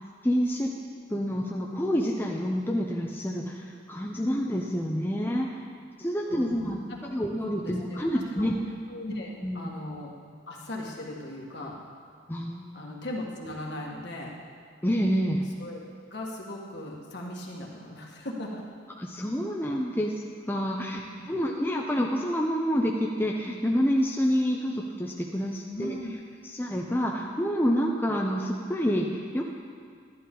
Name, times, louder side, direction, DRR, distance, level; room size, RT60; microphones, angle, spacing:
voice 1, 0.2-0.7 1.1-5.5 6.0-8.5 9.1-9.7 12.3-12.8 14.8-15.4 19.0-21.0 21.3-25.9 26.4-29.4, equal, 10° left, -1 dB, 0.6 m, -28 dB
voice 2, 6.2-6.7 7.0-7.2 7.5-8.4 8.9-10.1 10.5-11.7 12.7-14.3 15.6-15.8 16.1-18.6 20.8-21.2 25.7-26.1, left 1 dB, 55° left, -2 dB, 1.7 m, -38 dB
13.0 x 11.0 x 3.8 m, 2.1 s
head